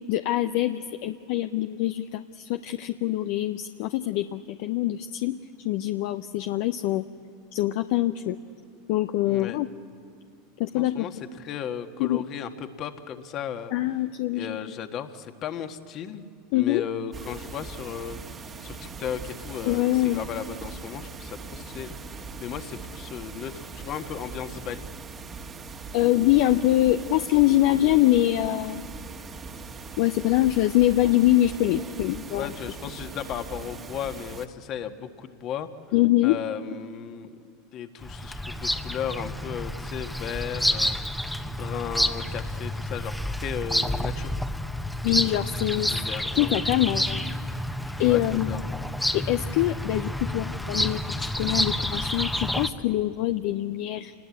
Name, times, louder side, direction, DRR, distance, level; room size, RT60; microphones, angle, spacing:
voice 1, 0.1-5.4 5.6-7.0 7.5-8.4 8.9-9.7 10.6-11.1 12.0-12.3 13.7-14.6 16.5-16.8 19.6-20.2 25.9-28.9 30.0-32.5 35.9-36.4 45.0-45.9 46.3-47.2 48.0-48.5 49.1-54.1, left 15 dB, 60° left, 8 dB, 0.7 m, -24 dB
voice 2, 9.3-9.6 10.7-13.7 14.3-16.2 16.5-21.9 22.4-24.9 32.3-35.7 36.2-37.4 37.7-43.2 43.4-44.4 45.7-46.8 48.0-48.6, left 8 dB, 45° left, 7 dB, 1.6 m, -35 dB
sound 1, 17.1-34.5, right 4 dB, 30° right, 1.7 m, -40 dB
Bird vocalization bird call bird song, 38.0-52.7, left 1 dB, 5° left, 1.1 m, -29 dB
28.0 x 20.0 x 8.5 m, 2.3 s
hypercardioid pair, 90°, 0 cm